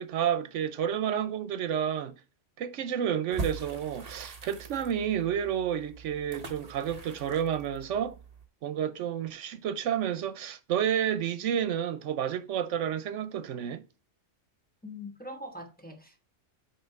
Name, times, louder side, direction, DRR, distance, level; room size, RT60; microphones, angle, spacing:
voice 1, 0.0-2.1 2.6-8.2 8.6-13.8, right 9 dB, 85° right, 1.0 m, -30 dB
sound 1, 3.3-8.5, right 4 dB, 35° right, 1.1 m, -42 dB
voice 2, 14.8-16.2, left 1 dB, 10° left, 1.0 m, -42 dB
8.9 x 3.1 x 4.5 m
omnidirectional pair, 1.2 m